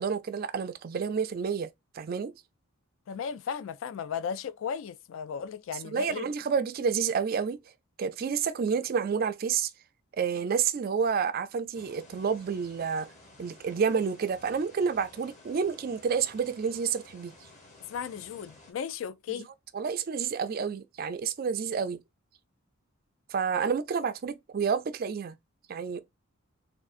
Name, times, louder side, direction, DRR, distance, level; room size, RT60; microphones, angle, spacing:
voice 1, 0.0-1.7 1.9-2.3 5.9-7.6 8.0-9.7 10.1-13.1 13.4-17.3 19.7-22.0 23.3-25.4 25.7-26.0, right 6 dB, 45° right, 0.3 m, -29 dB
voice 2, 3.1-6.3 17.9-19.5, left 7 dB, 65° left, 0.3 m, -35 dB
sound 1, 11.7-18.7, left 2 dB, 35° left, 0.9 m, -54 dB
3.6 x 2.4 x 2.4 m
head